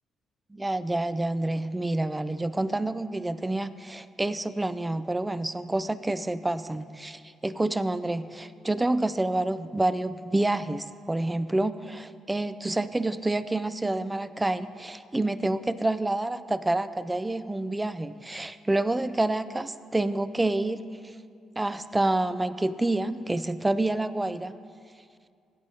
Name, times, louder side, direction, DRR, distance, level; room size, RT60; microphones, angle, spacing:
voice 1, 0.5-21.1 21.6-24.6, right 2 dB, 15° right, 13 dB, 0.4 m, -28 dB
17.0 x 9.0 x 2.8 m, 2.3 s
cardioid pair, 90°, 0 cm